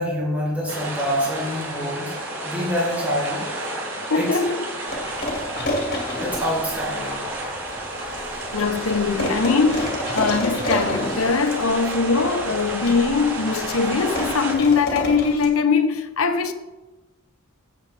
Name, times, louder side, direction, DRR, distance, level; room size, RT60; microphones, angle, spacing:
voice 1, 0.0-2.1 2.4-3.8 4.1-4.3 6.2-7.4 8.0-8.1, equal, 5° right, 4.3 m, -26 dB
sound 1, 0.7-14.5, right 1 dB, 65° right, 3.6 m, -31 dB
voice 2, 4.1-4.6 8.5-16.5, left 4 dB, 80° left, 0.9 m, -21 dB
sound 2, 4.9-15.5, left 1 dB, 45° left, 2.4 m, -31 dB
16.0 x 7.5 x 3.5 m
head